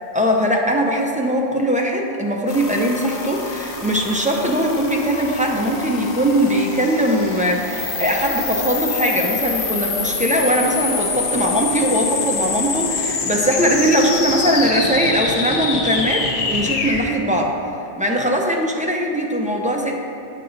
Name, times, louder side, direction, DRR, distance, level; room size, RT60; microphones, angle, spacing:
voice 1, 0.1-20.0, equal, 10° right, -1 dB, 0.5 m, -20 dB
sound 1, 2.5-17.0, left 4 dB, 60° left, 0.9 m, -26 dB
8.8 x 5.4 x 4.0 m, 2.7 s
omnidirectional pair, 1.1 m